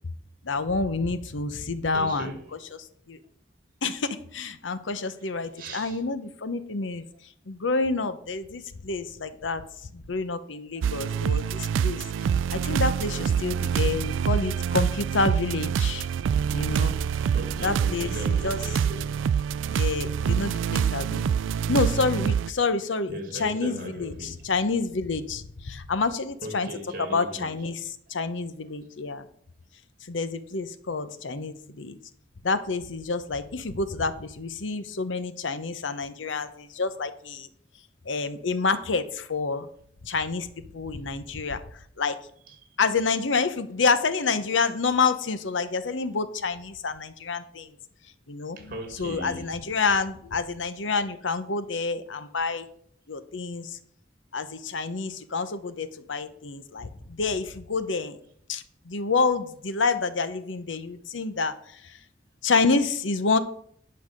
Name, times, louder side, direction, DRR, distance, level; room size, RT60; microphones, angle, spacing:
voice 1, 0.4-2.4 3.1-3.2 3.8-7.0 7.5-9.6 9.9-12.1 12.5-16.1 16.5-17.0 17.6-18.6 19.7-21.3 21.7-26.7 27.0-29.2 30.1-32.0 32.4-37.5 38.0-39.7 40.0-41.6 42.0-42.2 42.8-47.7 48.3-52.6 53.1-53.8 54.3-58.2 58.5-62.0 62.4-63.4, left 4 dB, 85° left, 0.9 m, -28 dB
voice 2, 1.9-2.5 5.6-6.0 10.7-10.9 16.3-16.4 17.3-19.1 23.1-24.4 26.4-27.6 30.9-31.0 31.3-31.4 42.5-42.6 48.6-49.5, right 1 dB, 50° right, 2.2 m, -38 dB
sound 1, 10.8-22.5, right 7 dB, 90° right, 0.3 m, -26 dB
10.5 x 5.7 x 6.4 m
head